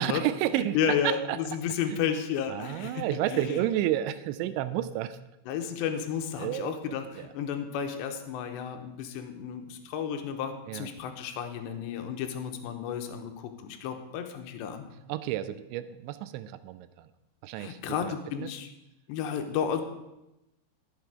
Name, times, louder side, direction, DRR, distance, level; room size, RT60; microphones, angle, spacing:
voice 1, 0.0-1.4 1.9-2.0 2.5-5.2 6.4-7.3 10.7-10.9 15.1-17.1 17.4-18.5, right 12 dB, 80° right, 12 dB, 2.7 m, -31 dB
voice 2, 0.5-3.6 5.5-14.9 17.6-18.7 19.1-19.8, left 8 dB, 75° left, 6 dB, 2.9 m, -32 dB
14.5 x 7.4 x 4.9 m, 0.93 s
omnidirectional pair, 5.6 m